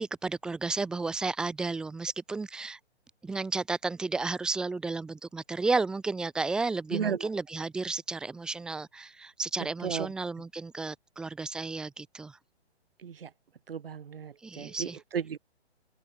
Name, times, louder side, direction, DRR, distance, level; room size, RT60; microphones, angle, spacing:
voice 1, 0.0-2.8 3.2-12.4 14.4-15.0, right 3 dB, ahead, 0.5 m, -32 dB
voice 2, 6.9-7.3 9.8-10.1 13.0-13.3 13.7-15.4, right 7 dB, 55° right, 6.4 m, -34 dB
figure-of-eight pair, 130°, 34 cm